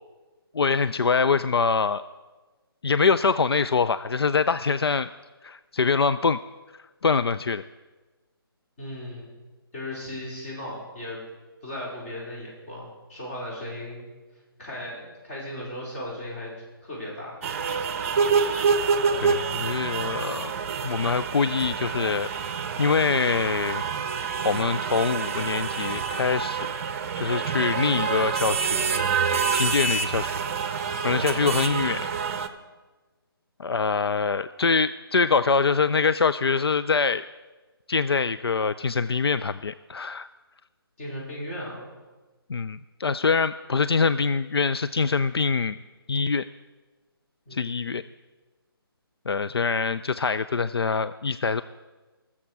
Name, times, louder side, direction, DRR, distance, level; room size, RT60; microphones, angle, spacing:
voice 1, 0.5-2.0 2.8-5.1 5.4-6.4 7.0-7.6 19.2-20.5 20.8-22.3 22.8-23.8 24.4-26.7 27.2-28.9 29.5-30.3 31.0-32.1 33.6-37.2 37.9-40.3 42.5-45.8 46.1-46.4 47.5-48.0 49.3-51.6, left 5 dB, 80° left, 13 dB, 0.4 m, -24 dB
voice 2, 8.8-9.3 9.7-11.2 11.6-14.1 14.6-16.5 16.8-17.4 41.0-41.9 47.5-48.0, left 1 dB, 35° left, -4 dB, 4.5 m, -36 dB
sound 1, 17.4-32.5, right 5 dB, 35° right, 0.7 m, -27 dB
19.5 x 7.2 x 4.7 m, 1.3 s
figure-of-eight pair, 145°, 13 cm